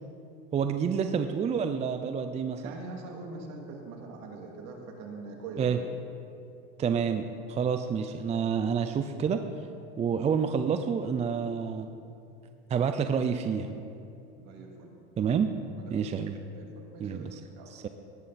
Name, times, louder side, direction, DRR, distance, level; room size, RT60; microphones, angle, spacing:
voice 1, 0.5-2.7 5.6-5.8 6.8-9.4 10.0-11.9 12.7-13.8 15.2-15.5 15.9-16.4 17.0-17.4 17.7-17.9, right 7 dB, 20° right, 8 dB, 0.4 m, -28 dB
voice 2, 2.6-5.8 14.4-14.9 15.8-16.2 16.5-17.3 17.5-17.7, right 3 dB, 55° right, 1 dB, 2.6 m, -43 dB
18.5 x 8.6 x 4.2 m, 2.7 s
supercardioid pair, 115°, 32 cm